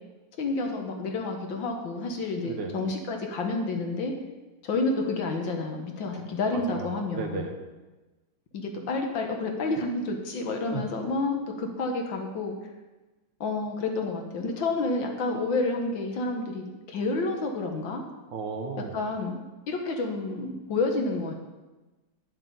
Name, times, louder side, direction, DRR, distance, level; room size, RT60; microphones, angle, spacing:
voice 1, 0.4-4.1 4.6-7.5 8.5-12.6 13.4-18.0 18.9-21.3, left 3 dB, 65° left, 3 dB, 1.9 m, -29 dB
voice 2, 6.5-7.5 10.7-10.8 18.3-19.0, right 4 dB, 60° right, 3 dB, 1.7 m, -34 dB
10.5 x 7.4 x 5.5 m, 1.2 s
omnidirectional pair, 2.3 m